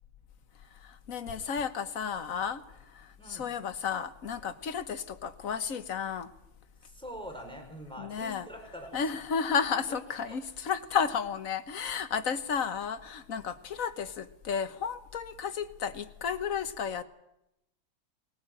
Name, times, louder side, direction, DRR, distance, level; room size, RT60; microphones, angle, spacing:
voice 1, 0.8-2.6 2.9-6.3 8.0-8.5 8.9-17.0, left 6 dB, 50° left, 1.4 m, -32 dB
voice 2, 6.8-9.0 10.3-10.4, equal, ahead, 4.5 m, -44 dB
20.5 x 18.5 x 9.0 m
omnidirectional pair, 2.2 m